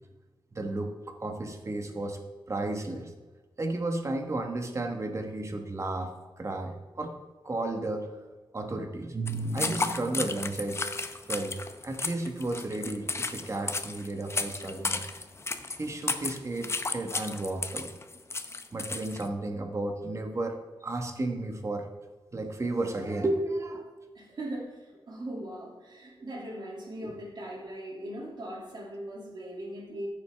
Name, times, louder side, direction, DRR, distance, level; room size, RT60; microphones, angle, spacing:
voice 1, 0.5-2.2 2.5-3.1 3.6-7.1 7.4-8.1 8.5-10.9 11.3-11.6 11.8-15.0 15.8-17.9 18.7-21.9 22.3-23.9 27.0-27.2, right 2 dB, 35° right, 5 dB, 1.2 m, -33 dB
sound 1, 9.3-19.3, left 3 dB, 30° left, 0.6 m, -34 dB
voice 2, 24.1-30.1, right 1 dB, 55° right, -1 dB, 2.4 m, -39 dB
14.0 x 6.8 x 3.4 m, 1.3 s
wide cardioid pair, 135°, 9 cm